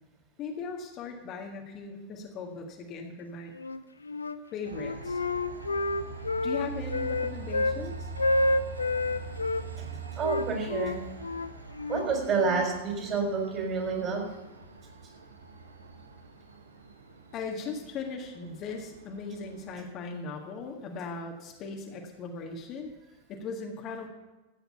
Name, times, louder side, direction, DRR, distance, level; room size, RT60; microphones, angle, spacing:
voice 1, 0.4-3.5 4.5-5.2 6.4-8.1 17.3-22.9 23.3-24.1, left 4 dB, 35° left, 1 dB, 1.7 m, -38 dB
Wind instrument woodwind instrument, 3.5-4.4 4.7-7.8 8.2-9.6 10.2-12.7, left 2 dB, 75° left, 0.5 m, -29 dB
Train, 4.7-19.8, right 5 dB, 75° right, 1.3 m, -43 dB
voice 2, 10.1-11.0 11.9-14.2, right 4 dB, 30° right, 1 dB, 4.1 m, -29 dB
14.0 x 9.0 x 5.7 m, 1.1 s
figure-of-eight pair, 90°, 0 cm